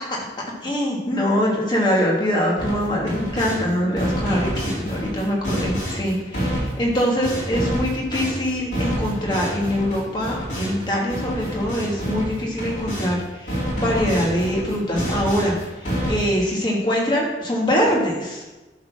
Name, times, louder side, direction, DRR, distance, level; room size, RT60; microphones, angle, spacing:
voice 1, 0.6-18.4, equal, 25° left, -3 dB, 1.8 m, -23 dB
sound 1, 2.6-3.6 4.0-13.1 13.5-16.4, equal, 45° left, 3.4 m, -28 dB
11.0 x 4.2 x 6.0 m, 1.1 s
head